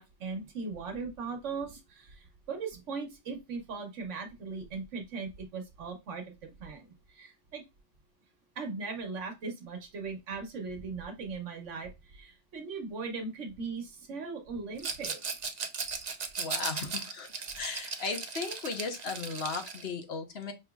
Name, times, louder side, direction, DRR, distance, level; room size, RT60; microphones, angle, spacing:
voice 1, 0.0-7.6 8.6-15.4, right 4 dB, 80° right, 1.2 m, -39 dB
Rattle, 14.8-19.9, right 5 dB, 45° right, 0.6 m, -37 dB
voice 2, 16.4-17.3 17.5-20.5, left 4 dB, 60° left, 1.1 m, -36 dB
5.3 x 2.9 x 2.3 m
omnidirectional pair, 1.3 m